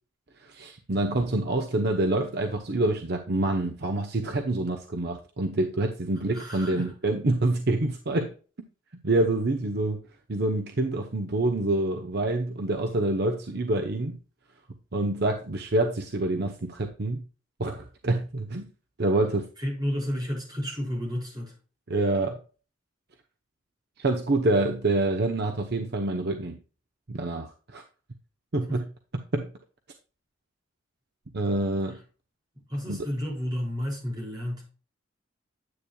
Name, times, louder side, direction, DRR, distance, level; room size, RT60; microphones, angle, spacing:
voice 1, 0.4-8.3 9.0-10.0 10.3-14.2 14.9-17.2 17.6-18.7 19.0-19.5 21.9-22.4 24.0-26.6 27.1-27.8 28.5-28.8 29.3-29.5 31.3-32.0 32.9-33.0, right 2 dB, 55° right, 0.8 m, -26 dB
voice 2, 6.3-6.9 19.6-21.5 28.7-28.8 32.7-34.6, equal, 20° right, 4.9 m, -31 dB
9.8 x 8.5 x 2.3 m
head